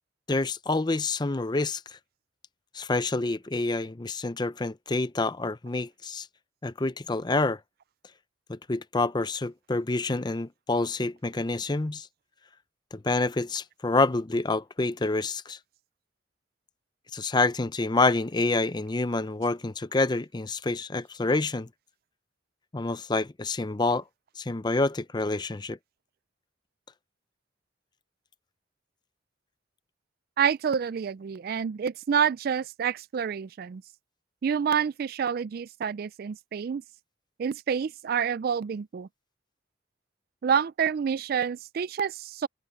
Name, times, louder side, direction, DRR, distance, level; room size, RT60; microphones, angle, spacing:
voice 1, 0.3-1.8 2.7-6.3 6.6-7.6 8.5-12.1 12.9-15.6 17.1-21.7 22.7-24.0 24.4-25.8, left 3 dB, 20° left, 0.5 m, -27 dB
voice 2, 30.4-33.8 34.4-36.8 37.4-39.1 40.4-42.5, right 7 dB, 50° right, 0.3 m, -28 dB
open air
head